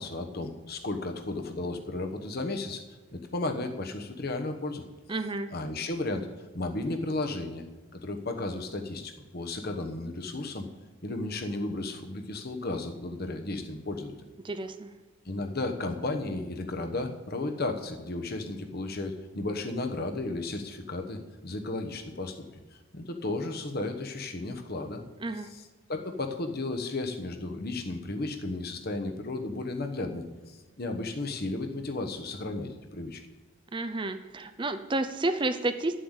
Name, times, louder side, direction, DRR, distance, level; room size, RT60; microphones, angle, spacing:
voice 1, 0.0-2.8 3.1-4.8 5.5-7.6 7.9-10.7 11.0-14.3 15.2-22.4 22.7-25.0 25.4-33.2, left 2 dB, 45° left, 6 dB, 1.1 m, -34 dB
voice 2, 5.1-5.5 14.4-14.9 25.2-25.5 33.7-36.0, right 2 dB, 20° right, 9 dB, 0.5 m, -30 dB
11.5 x 7.7 x 8.1 m, 1.3 s
head